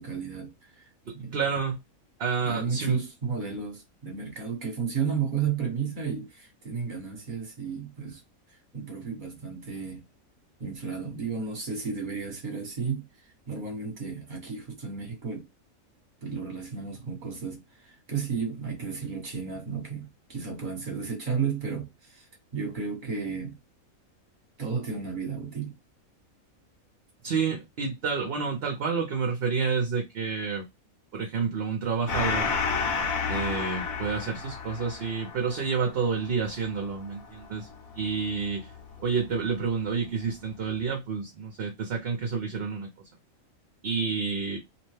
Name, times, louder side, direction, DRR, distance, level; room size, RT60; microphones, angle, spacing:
voice 1, 0.0-0.9 1.1-1.4 2.4-8.2 8.5-10.0 10.6-15.5 16.2-23.6 24.6-25.7, right 6 dB, 35° right, 1.2 m, -33 dB
voice 2, 1.1-1.8 2.2-3.0 27.2-30.6 31.1-32.5 33.3-37.7 37.9-38.7 39.0-42.9 43.8-44.6, right 5 dB, 55° right, 0.8 m, -29 dB
Gong, 32.1-39.0, left 5 dB, 75° left, 1.3 m, -32 dB
2.9 x 2.1 x 3.1 m
omnidirectional pair, 1.5 m